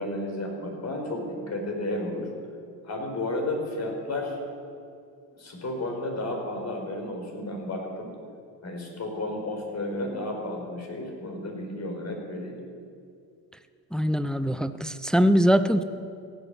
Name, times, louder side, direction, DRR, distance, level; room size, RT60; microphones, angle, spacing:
voice 1, 0.0-2.3 2.8-4.4 5.3-8.1 8.6-12.6, left 1 dB, 35° left, 2 dB, 4.9 m, -32 dB
voice 2, 13.9-15.8, equal, ahead, 12 dB, 0.6 m, -22 dB
15.5 x 7.8 x 9.8 m, 2.4 s
hypercardioid pair, 70°, 49 cm